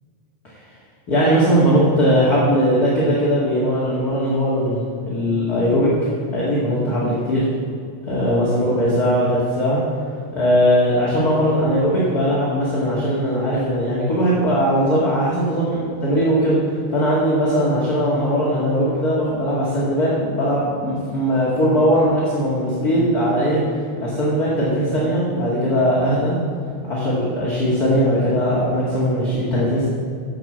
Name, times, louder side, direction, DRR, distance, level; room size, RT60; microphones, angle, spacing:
voice 1, 1.1-5.9 6.3-7.5 8.1-9.8 10.3-16.6 16.9-23.6 24.0-26.4 26.9-29.9, equal, 35° left, -7 dB, 2.3 m, -19 dB
11.0 x 7.8 x 7.5 m, 2.5 s
omnidirectional pair, 3.5 m